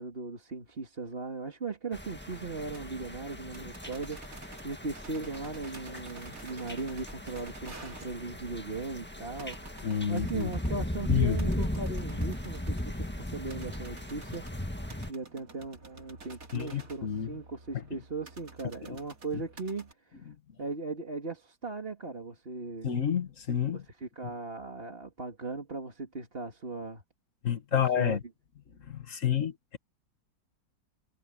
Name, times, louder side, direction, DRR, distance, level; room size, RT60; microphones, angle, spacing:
voice 1, 0.0-20.3 20.6-22.9 23.7-27.0 27.7-28.2, right 3 dB, 35° right, 2.5 m, -38 dB
sound 1, 1.9-15.1, left 1 dB, 5° left, 1.5 m, -36 dB
sound 2, 2.6-19.9, right 3 dB, 55° right, 3.2 m, -52 dB
voice 2, 9.8-10.5 11.1-11.4 16.5-17.3 18.8-19.0 22.8-23.8 27.4-28.2 28.9-29.8, left 8 dB, 50° left, 1.8 m, -29 dB
omnidirectional pair, 1.8 m